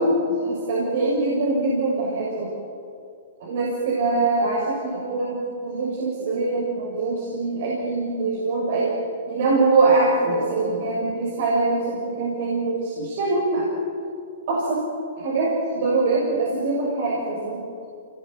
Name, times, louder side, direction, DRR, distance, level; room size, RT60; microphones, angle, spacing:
voice 1, 0.0-2.5 3.4-8.9 9.3-13.7 14.5-14.8 15.2-17.6, right 3 dB, 60° right, -3 dB, 6.8 m, -23 dB
25.5 x 20.5 x 9.6 m, 2.4 s
hypercardioid pair, 145°, 0 cm